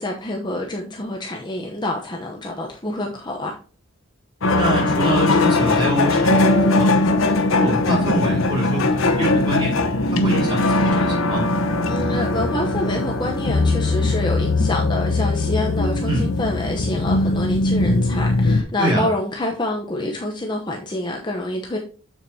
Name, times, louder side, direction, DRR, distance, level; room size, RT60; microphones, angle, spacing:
voice 1, 0.0-3.6 11.9-21.8, left 1 dB, 20° left, 0.8 m, -27 dB
sound 1, 4.4-18.6, left 2 dB, 85° left, 0.9 m, -20 dB
voice 2, 4.5-6.9 7.4-9.8 10.1-11.5 16.0-16.3 18.8-19.0, right 1 dB, 20° right, 3.6 m, -25 dB
7.3 x 7.2 x 2.8 m
head